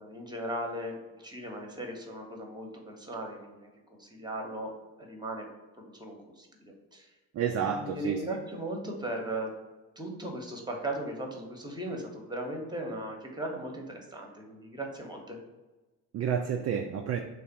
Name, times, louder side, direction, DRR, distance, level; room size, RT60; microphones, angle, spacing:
voice 1, 0.0-4.7 5.1-5.5 5.9-7.1 7.7-9.5 10.0-15.4, right 1 dB, 10° right, 2 dB, 1.0 m, -38 dB
voice 2, 7.3-8.2 16.1-17.2, right 7 dB, 35° right, 3 dB, 0.4 m, -30 dB
3.3 x 2.5 x 4.4 m, 1.1 s
hypercardioid pair, 40°, 48 cm